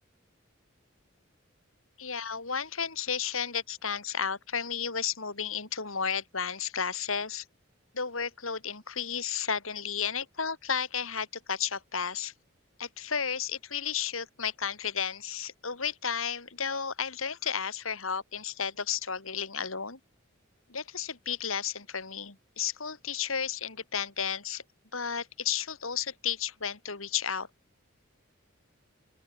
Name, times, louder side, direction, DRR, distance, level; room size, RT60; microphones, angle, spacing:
voice 1, 2.0-7.4 7.9-12.3 12.8-20.0 20.7-24.6 24.9-27.5, left 7 dB, 80° left, 3.8 m, -33 dB
open air
head